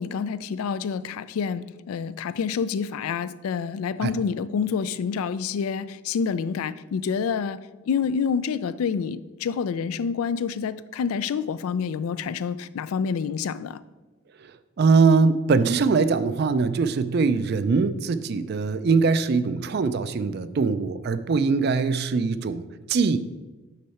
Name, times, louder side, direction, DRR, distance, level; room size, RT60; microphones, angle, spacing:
voice 1, 0.0-13.8, left 6 dB, 90° left, 0.3 m, -28 dB
voice 2, 14.4-23.2, right 4 dB, 50° right, 0.4 m, -22 dB
6.6 x 5.6 x 4.2 m
head